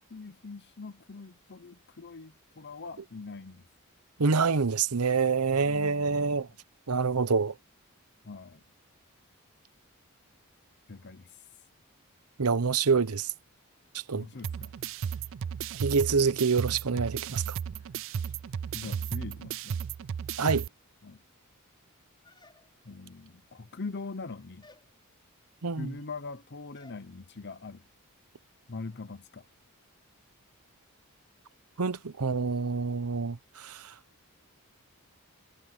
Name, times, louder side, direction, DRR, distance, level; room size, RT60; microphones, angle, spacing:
voice 1, 0.0-3.6 5.6-6.4 8.2-8.6 10.9-11.5 14.1-14.7 18.7-19.8 21.0-21.2 22.8-24.7 25.8-27.8 28.7-29.5, left 3 dB, 50° left, 0.8 m, -42 dB
voice 2, 4.2-6.5 6.9-7.5 12.4-13.3 14.1-14.3 15.7-17.6 20.4-20.6 25.6-25.9 31.8-33.9, right 5 dB, 90° right, 0.9 m, -26 dB
sound 1, 14.4-20.7, right 7 dB, 60° right, 0.4 m, -34 dB
sound 2, 22.2-23.0 23.8-24.2 24.6-24.9 26.7-27.1, left 2 dB, 20° left, 6.3 m, -58 dB
head